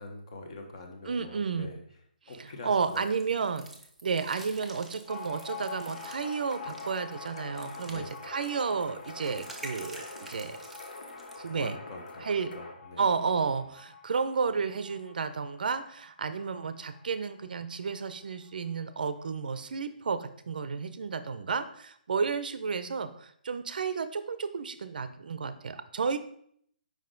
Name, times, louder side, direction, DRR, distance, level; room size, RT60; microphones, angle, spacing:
voice 1, 0.0-1.8 2.3-3.0 7.8-8.1 11.5-12.2 12.5-13.5, left 2 dB, 40° left, 3 dB, 1.1 m, -44 dB
voice 2, 1.1-1.7 2.4-3.7 4.0-10.6 11.4-11.8 12.2-12.5 13.0-26.2, right 5 dB, 60° right, 11 dB, 0.5 m, -32 dB
sound 1, 2.8-11.5, right 2 dB, ahead, 0.4 m, -49 dB
sound 2, 5.1-18.2 18.5-18.6 18.8-19.6, left 5 dB, 20° left, 1.4 m, -47 dB
sound 3, 5.9-12.7, left 2 dB, 70° left, 1.0 m, -46 dB
5.6 x 5.1 x 3.8 m, 0.66 s
hypercardioid pair, 170°, 5 cm